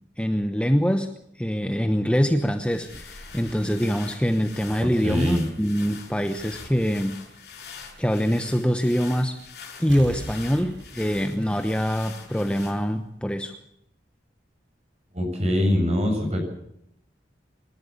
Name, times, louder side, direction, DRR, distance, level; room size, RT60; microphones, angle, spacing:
voice 1, 0.2-7.2 8.0-9.4 9.8-13.6, equal, 5° left, 7 dB, 1.0 m, -24 dB
sound 1, 2.4-13.1, left 5 dB, 65° left, 6.9 m, -44 dB
voice 2, 4.8-5.5 15.1-16.4, left 1 dB, 35° right, 3 dB, 7.4 m, -23 dB
sound 2, 9.9-12.5 12.8-12.9, right 1 dB, 90° right, 3.1 m, -41 dB
26.0 x 12.5 x 8.6 m, 0.76 s
head